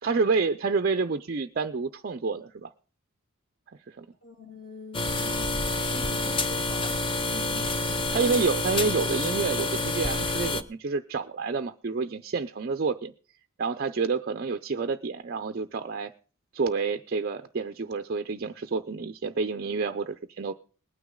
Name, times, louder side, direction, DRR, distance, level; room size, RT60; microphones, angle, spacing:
voice 1, 0.0-2.7 3.9-4.1 7.2-7.6 8.1-13.1 13.6-16.1 16.5-20.5, right 4 dB, 45° right, 9 dB, 0.5 m, -29 dB
voice 2, 4.2-7.7, left 4 dB, 40° left, -2 dB, 2.4 m, -46 dB
sound 1, 4.9-10.6, left 2 dB, 25° left, 0.7 m, -28 dB
20.5 x 9.4 x 3.7 m, 0.38 s
head